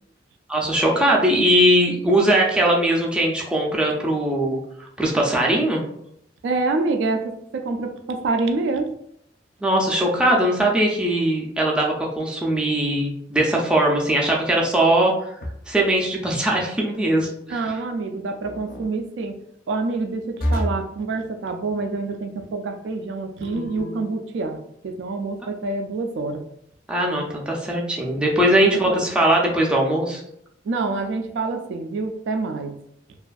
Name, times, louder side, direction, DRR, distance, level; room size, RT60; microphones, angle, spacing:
voice 1, 0.5-4.6 5.0-5.8 9.6-15.1 15.7-17.6 26.9-30.2, right 1 dB, 5° right, -2 dB, 0.4 m, -20 dB
voice 2, 6.4-8.9 17.5-19.4 19.7-26.4 28.7-29.0 30.6-32.8, right 3 dB, 75° right, 6 dB, 0.3 m, -27 dB
sound 1, 15.4-15.9 18.4-18.9 20.4-20.9 23.4-24.1, equal, 50° left, 0.5 m, -28 dB
2.5 x 2.3 x 2.3 m, 0.73 s
head